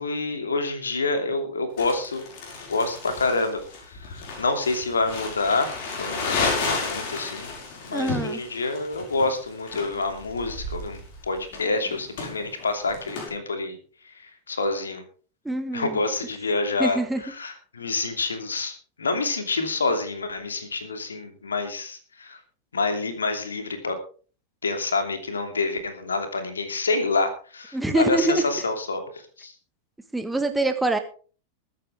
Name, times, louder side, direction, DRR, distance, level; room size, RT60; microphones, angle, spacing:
voice 1, 0.0-2.2 2.7-5.7 6.0-7.5 7.8-13.8 14.1-15.0 15.7-22.4 22.7-24.0 24.6-29.0 29.4-29.5, left 3 dB, 70° left, 7 dB, 2.8 m, -27 dB
Crumpling crinkling, 1.8-13.3, left 4 dB, 50° left, 5.5 m, -33 dB
voice 2, 7.9-8.4 15.4-16.0 16.8-17.2 27.7-28.4 30.1-31.0, right 2 dB, 5° right, 8 dB, 1.5 m, -24 dB
22.0 x 9.6 x 3.6 m, 0.40 s
figure-of-eight pair, 90°, 0 cm